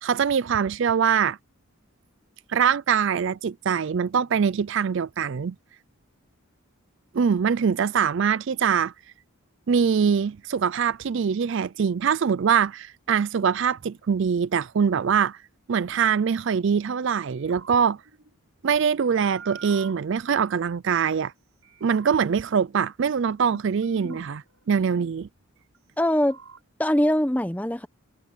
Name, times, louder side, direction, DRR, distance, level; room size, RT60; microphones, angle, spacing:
voice 1, 0.0-1.4 2.5-5.6 7.1-8.9 9.7-15.4 15.7-18.0 18.6-21.3 21.8-25.3, right 7 dB, 60° right, 0.4 m, -23 dB
sound 1, 17.3-21.3 21.6-23.6 23.8-25.8 26.0-26.6, right 5 dB, 75° right, 6.3 m, -49 dB
voice 2, 26.0-26.4 26.8-27.9, left 1 dB, 5° left, 0.9 m, -23 dB
head